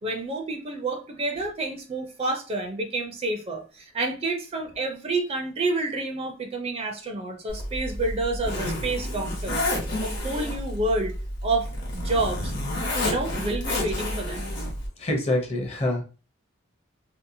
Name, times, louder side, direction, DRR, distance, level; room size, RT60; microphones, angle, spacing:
voice 1, 0.0-9.7 10.0-11.1 11.4-12.5 13.0-14.5, right 2 dB, 30° right, 3 dB, 0.4 m, -29 dB
Zipper (clothing), 7.5-14.9, left 1 dB, 60° left, 0.9 m, -30 dB
voice 2, 15.0-16.0, left 1 dB, 30° left, 2 dB, 0.6 m, -25 dB
2.7 x 2.0 x 2.6 m, 0.35 s
head